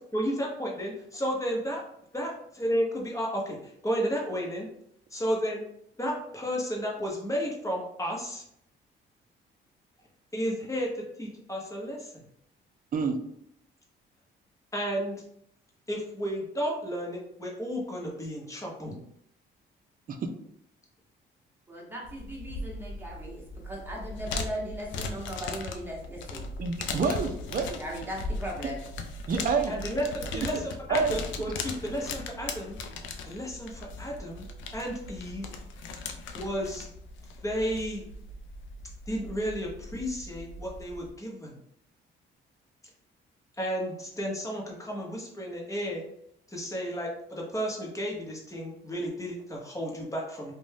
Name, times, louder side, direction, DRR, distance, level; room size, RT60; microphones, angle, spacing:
voice 1, 0.1-1.8 2.1-4.7 5.1-5.6 6.0-8.4 10.3-12.2 14.7-15.2 15.9-18.9 29.7-32.8 33.2-34.5 34.7-35.5 36.3-36.8 37.4-38.0 39.1-41.6 43.6-46.1 46.5-50.5, equal, 15° left, -2 dB, 0.9 m, -32 dB
voice 2, 21.7-26.4 27.8-28.8, equal, 10° right, -3 dB, 1.1 m, -38 dB
sound 1, 22.0-41.1, left 3 dB, 75° left, 0.4 m, -39 dB
voice 3, 26.6-27.8 29.3-29.7 30.3-30.5 30.9-31.2, right 5 dB, 45° right, 5 dB, 0.5 m, -27 dB
2.5 x 2.2 x 3.3 m, 0.71 s
cardioid pair, 90°, 20 cm